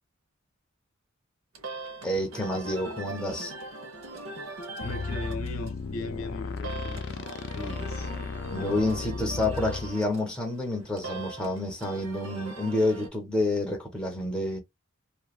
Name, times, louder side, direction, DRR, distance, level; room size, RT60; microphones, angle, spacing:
sound 1, 1.5-13.1, right 2 dB, 80° right, 0.8 m, -41 dB
voice 1, 2.0-3.5 8.5-14.6, left 1 dB, 5° left, 0.7 m, -29 dB
voice 2, 4.8-7.2 7.5-8.1, left 2 dB, 85° left, 0.9 m, -38 dB
sound 2, 4.8-9.9, left 4 dB, 55° left, 0.4 m, -35 dB
3.0 x 2.2 x 2.3 m
head